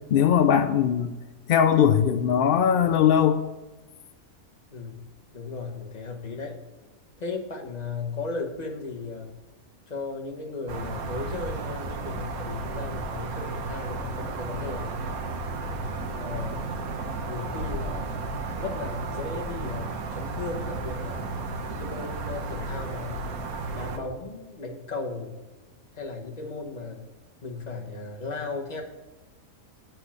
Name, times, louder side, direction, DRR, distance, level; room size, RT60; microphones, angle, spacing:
voice 1, 0.1-1.1 1.5-3.4, left 8 dB, 80° left, 8 dB, 0.5 m, -20 dB
voice 2, 4.7-5.0 5.3-6.6 7.2-9.4 9.9-15.0 16.1-16.9 17.3-18.2 18.5-21.2 21.7-23.2 23.7-25.4 25.9-27.1 27.4-28.8, left 3 dB, 30° left, 1 dB, 1.1 m, -36 dB
sound 1, 10.7-24.0, right 3 dB, 85° right, 1.3 m, -33 dB
8.0 x 4.5 x 7.2 m, 1.2 s
omnidirectional pair, 1.5 m